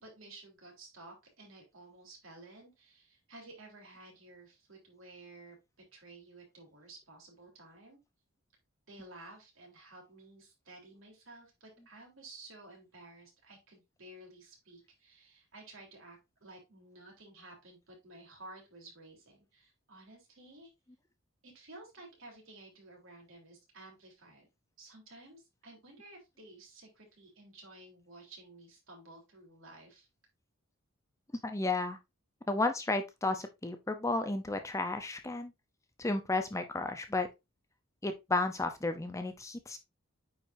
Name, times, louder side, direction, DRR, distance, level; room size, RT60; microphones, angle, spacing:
voice 1, 0.0-5.6 5.9-8.0 8.9-20.7 21.4-24.5 24.8-30.1, right 2 dB, 65° right, 3.5 m, -53 dB
voice 2, 31.4-32.0 32.5-35.5 36.0-37.3 38.0-39.8, left 2 dB, 15° left, 0.6 m, -33 dB
9.2 x 4.8 x 2.6 m
head